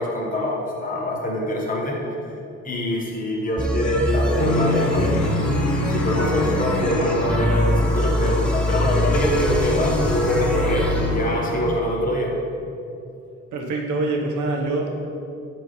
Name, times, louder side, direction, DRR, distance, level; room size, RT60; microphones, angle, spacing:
voice 1, 0.0-2.0 2.6-5.2 5.8-12.3, equal, 25° left, -2 dB, 1.3 m, -24 dB
southern synth rap loop, 3.6-11.1, equal, 5° left, 0.7 m, -24 dB
sound 1, 4.4-11.7, left 3 dB, 60° left, 1.3 m, -28 dB
voice 2, 13.5-14.9, right 2 dB, 80° right, 1 dB, 1.1 m, -24 dB
10.5 x 4.6 x 3.2 m, 2.6 s
cardioid pair, 90°, 30 cm